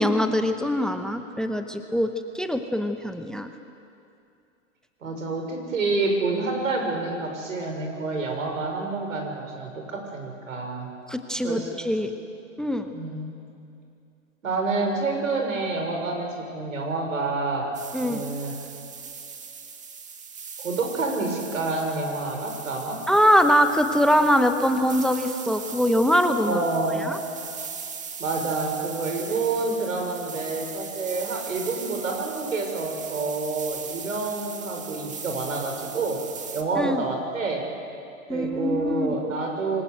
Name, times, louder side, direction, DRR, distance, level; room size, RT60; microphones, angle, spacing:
voice 1, 0.0-3.5 11.1-12.1 12.6-12.9 17.9-18.2 23.1-26.6 27.0-27.2 36.8-37.0 38.3-39.1, equal, ahead, 8 dB, 1.0 m, -23 dB
voice 2, 5.0-10.9 11.4-11.8 12.9-13.3 14.4-17.7 18.0-18.5 20.6-23.0 26.4-27.1 28.2-36.2 36.5-37.6 38.3-39.8, right 3 dB, 85° right, 2 dB, 6.2 m, -28 dB
sound 1, 17.7-36.6, right 6 dB, 20° right, 1.9 m, -39 dB
26.0 x 20.5 x 8.0 m, 2.6 s
hypercardioid pair, 115°, 39 cm